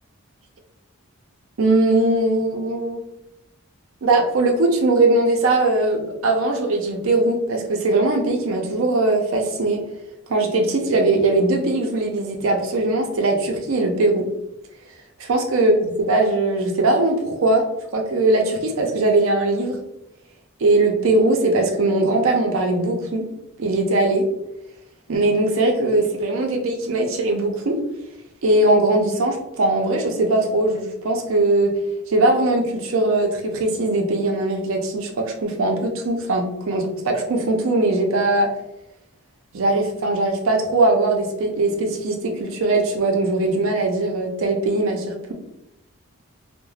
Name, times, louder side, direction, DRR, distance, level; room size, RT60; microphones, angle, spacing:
voice 1, 1.6-3.0 4.0-9.8 10.3-14.3 15.2-17.7 17.9-19.8 20.6-23.3 23.6-24.2 25.1-27.8 28.4-31.7 32.1-38.5 39.5-45.3, right 2 dB, 65° right, 2 dB, 0.5 m, -20 dB
2.3 x 2.1 x 3.1 m, 0.88 s
head